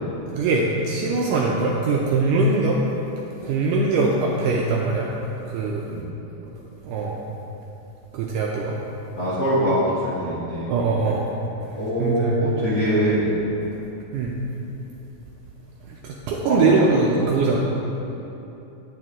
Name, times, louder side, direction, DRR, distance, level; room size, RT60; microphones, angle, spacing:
voice 1, 0.4-2.8 3.4-5.1 5.5-5.9 6.8-7.2 8.1-8.8 10.3-10.4 10.7-11.3 12.0-12.4 14.1-14.3 15.9-17.6, right 3 dB, 80° right, -1 dB, 1.9 m, -22 dB
voice 2, 9.1-10.7 11.7-13.3 16.5-16.9 17.2-17.4, equal, 40° left, -10 dB, 1.5 m, -23 dB
9.1 x 9.1 x 3.6 m, 2.9 s
omnidirectional pair, 4.2 m